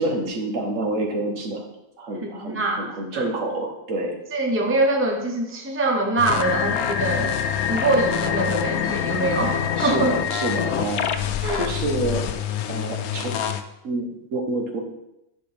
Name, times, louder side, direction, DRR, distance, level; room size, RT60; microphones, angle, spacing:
voice 1, 0.0-1.7 2.0-4.2 9.7-12.3 12.7-13.4 13.8-14.8, right 2 dB, 65° right, 2 dB, 1.4 m, -28 dB
voice 2, 2.2-3.2 4.3-7.3 7.7-10.1 11.4-11.7, right 2 dB, 10° right, 1 dB, 0.8 m, -24 dB
sound 1, 6.2-13.6, left 9 dB, 85° left, 1.1 m, -25 dB
10.0 x 5.2 x 3.4 m, 0.87 s
omnidirectional pair, 1.5 m